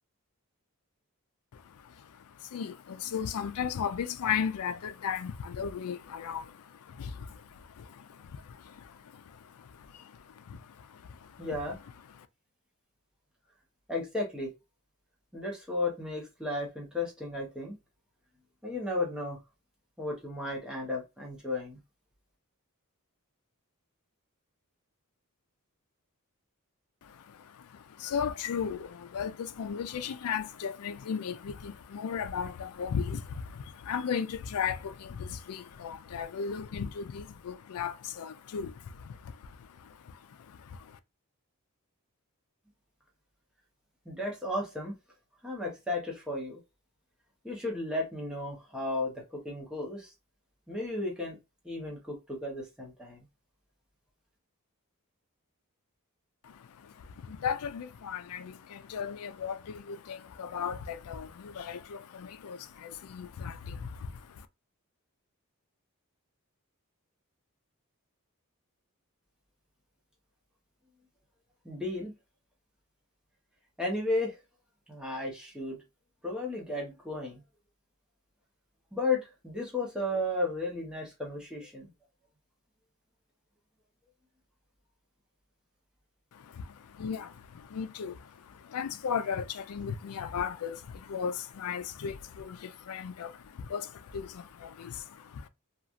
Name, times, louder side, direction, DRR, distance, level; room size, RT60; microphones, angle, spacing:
voice 1, 1.5-11.5 12.1-12.3 27.0-41.0 56.4-64.5 86.3-95.5, left 7 dB, 75° left, 0.4 m, -37 dB
voice 2, 11.4-11.8 13.9-14.5 15.3-17.8 18.6-19.4 20.0-21.8 44.0-45.0 45.4-46.6 47.4-50.1 50.7-51.4 51.6-53.3 71.6-72.1 73.8-74.4 74.9-75.8 76.2-77.4 78.9-81.9, left 2 dB, 5° right, 1.0 m, -34 dB
3.0 x 2.4 x 2.5 m
head